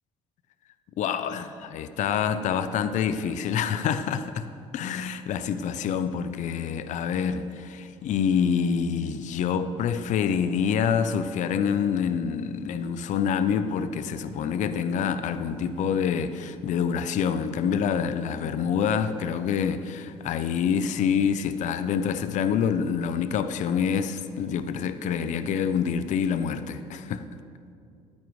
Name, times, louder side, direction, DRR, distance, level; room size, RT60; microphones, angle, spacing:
voice 1, 1.0-27.2, left 7 dB, 55° left, 11 dB, 0.6 m, -26 dB
21.5 x 9.5 x 3.2 m, 2.5 s
supercardioid pair, 85°, 15 cm